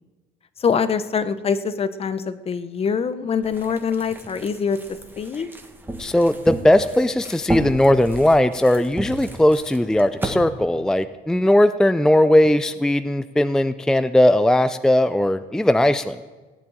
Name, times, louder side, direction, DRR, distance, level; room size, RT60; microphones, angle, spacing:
voice 1, 0.6-4.8 5.2-5.5, left 6 dB, 35° left, 13 dB, 0.8 m, -24 dB
sound 1, 3.4-10.4, right 1 dB, 10° right, 1.6 m, -33 dB
voice 2, 6.0-16.2, left 1 dB, 5° left, 12 dB, 0.4 m, -18 dB
16.5 x 7.5 x 8.9 m, 1.3 s
cardioid pair, 110°, 17 cm